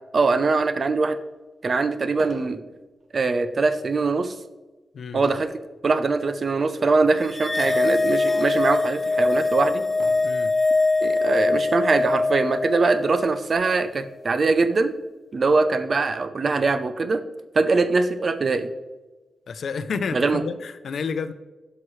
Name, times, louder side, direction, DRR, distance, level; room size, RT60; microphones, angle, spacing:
voice 1, 0.1-1.2 1.6-2.6 3.1-4.3 5.1-5.5 5.8-9.8 11.0-14.9 15.3-17.2 17.5-18.7 20.1-20.4, right 3 dB, 40° right, 11 dB, 0.6 m, -22 dB
sound 1, 1.2-1.3 2.1-2.6 3.0-3.3 5.2-5.6 6.2-6.6 7.6-8.0 8.7-8.8 9.9-10.4 11.4-11.6 11.9-12.0 12.4-13.5, right 2 dB, 70° right, 1.1 m, -43 dB
sound 2, 7.3-13.9, left 3 dB, 20° left, 0.3 m, -23 dB
voice 2, 19.5-21.3, left 5 dB, 70° left, 12 dB, 0.6 m, -30 dB
12.5 x 5.8 x 3.2 m, 1.2 s
wide cardioid pair, 155°, 0 cm